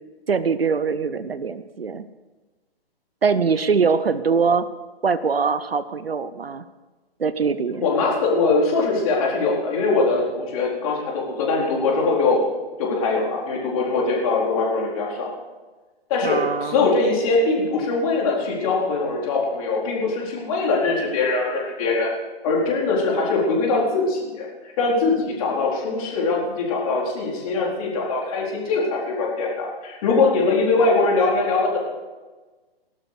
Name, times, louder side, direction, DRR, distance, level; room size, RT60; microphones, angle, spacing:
voice 1, 0.3-2.1 3.2-4.7 5.0-6.6 7.2-7.9 16.2-16.8, right 5 dB, 70° right, 14 dB, 0.9 m, -22 dB
voice 2, 7.8-12.4 12.8-15.3 16.1-22.1 22.4-31.8, left 3 dB, 35° left, -2 dB, 4.2 m, -22 dB
18.0 x 12.5 x 5.1 m, 1.3 s
figure-of-eight pair, 130°, 31 cm